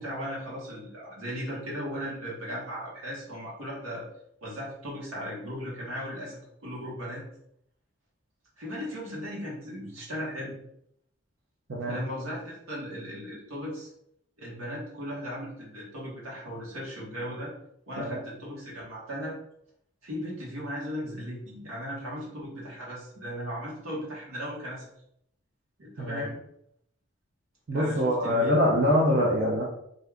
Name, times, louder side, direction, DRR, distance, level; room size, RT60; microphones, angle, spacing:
voice 1, 0.0-4.0 4.4-7.2 8.6-10.5 11.8-13.9 14.4-17.5 17.9-19.3 20.0-24.9 25.8-26.4 27.7-28.5, equal, 85° right, -5 dB, 1.3 m, -37 dB
voice 2, 27.7-29.6, equal, 55° right, -5 dB, 0.6 m, -24 dB
2.7 x 2.4 x 3.4 m, 0.74 s
head